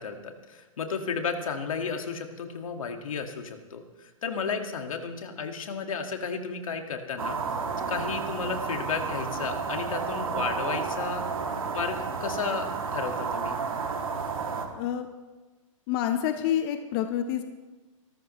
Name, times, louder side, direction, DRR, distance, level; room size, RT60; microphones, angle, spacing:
voice 1, 0.0-7.6 7.9-11.3 11.7-13.6, left 5 dB, 75° left, 5 dB, 2.0 m, -33 dB
sound 1, 7.2-14.7, right 5 dB, 80° right, 2.6 m, -31 dB
voice 2, 14.8-15.1 15.9-17.4, left 10 dB, 40° left, 7 dB, 1.0 m, -27 dB
25.0 x 13.5 x 3.2 m, 1.2 s
hypercardioid pair, 125°, 17 cm